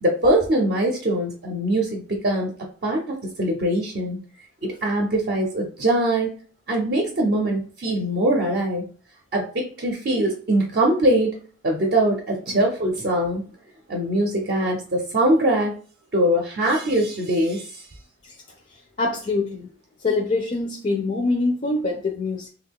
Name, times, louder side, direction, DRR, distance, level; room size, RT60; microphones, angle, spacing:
voice 1, 0.0-2.6 2.8-4.2 4.6-6.3 6.7-8.9 9.3-11.3 11.6-13.5 13.9-15.8 16.1-17.8, right 1 dB, 50° right, 0 dB, 0.5 m, -22 dB
voice 2, 19.0-19.7 20.0-22.5, left 3 dB, 40° left, 1 dB, 0.4 m, -24 dB
3.0 x 2.3 x 3.6 m, 0.42 s
head